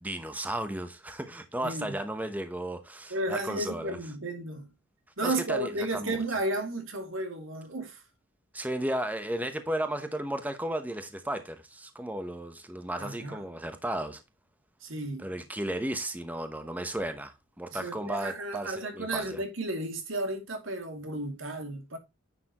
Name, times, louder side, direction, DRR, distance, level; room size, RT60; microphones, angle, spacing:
voice 1, 0.0-4.0 5.2-6.2 8.5-14.2 15.2-19.4, right 1 dB, 10° right, 0.9 m, -34 dB
voice 2, 1.6-2.0 3.1-4.7 5.2-8.0 13.0-13.4 14.8-15.3 17.7-22.0, right 2 dB, 80° right, 2.7 m, -33 dB
9.8 x 6.7 x 3.0 m
head